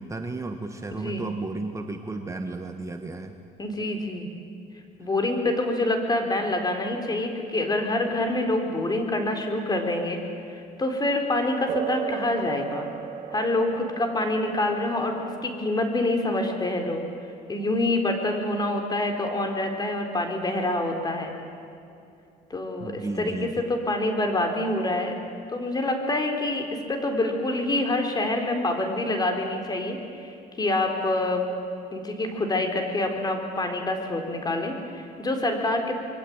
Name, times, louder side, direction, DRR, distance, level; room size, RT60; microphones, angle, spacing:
voice 1, 0.0-3.3 22.8-23.5, right 2 dB, 20° right, 5 dB, 1.5 m, -33 dB
voice 2, 0.9-1.2 3.6-4.3 5.0-10.2 10.8-12.9 13.3-17.0 17.5-21.3 22.5-25.1 25.5-31.5 31.9-35.9, left 2 dB, 25° left, 4 dB, 4.4 m, -26 dB
sound 1, 11.7-19.7, right 8 dB, 65° right, 2.3 m, -38 dB
26.5 x 23.0 x 9.1 m, 2.6 s
cardioid pair, 100°, 16 cm